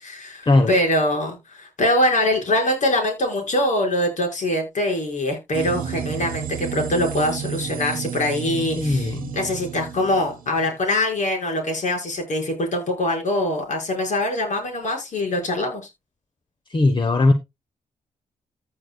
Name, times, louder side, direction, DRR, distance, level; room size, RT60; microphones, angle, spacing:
voice 1, 0.0-15.8, left 1 dB, 60° left, 5.3 m, -23 dB
sound 1, 5.5-10.8, right 8 dB, 80° right, 1.0 m, -32 dB
voice 2, 8.8-9.3 16.7-17.3, left 2 dB, 35° left, 1.1 m, -18 dB
15.0 x 6.7 x 2.3 m
supercardioid pair, 60°, 14 cm